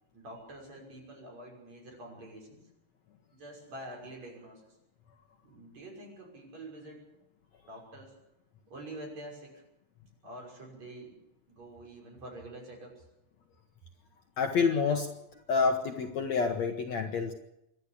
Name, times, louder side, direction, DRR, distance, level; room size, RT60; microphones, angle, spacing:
voice 1, 0.1-2.6 3.3-4.6 5.4-7.1 7.7-8.1 8.7-9.6 10.2-11.2 11.5-13.0, right 1 dB, 45° right, 0 dB, 7.1 m, -46 dB
voice 2, 14.4-15.1 15.5-17.3, left 5 dB, 60° left, 4 dB, 2.0 m, -28 dB
26.5 x 12.0 x 8.4 m, 0.88 s
omnidirectional pair, 4.2 m